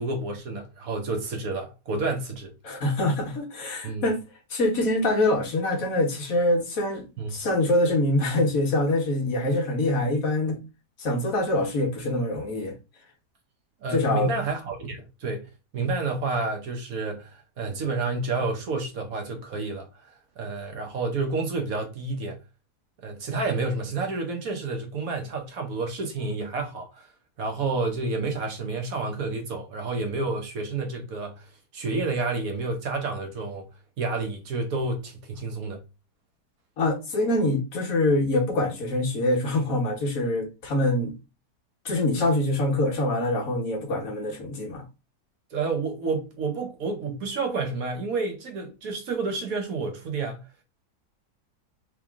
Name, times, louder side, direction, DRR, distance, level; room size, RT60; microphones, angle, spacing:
voice 1, 0.0-2.5 3.8-4.1 7.2-7.3 13.8-15.5 15.7-22.4 23.0-27.1 27.4-33.6 34.0-35.8 45.5-50.4, right 3 dB, 60° right, 1.4 m, -30 dB
voice 2, 2.6-4.2 4.5-10.6 11.0-12.7 13.9-14.3 36.8-41.1 41.8-44.8, left 1 dB, 60° left, 1.5 m, -24 dB
3.6 x 3.4 x 3.5 m
omnidirectional pair, 1.8 m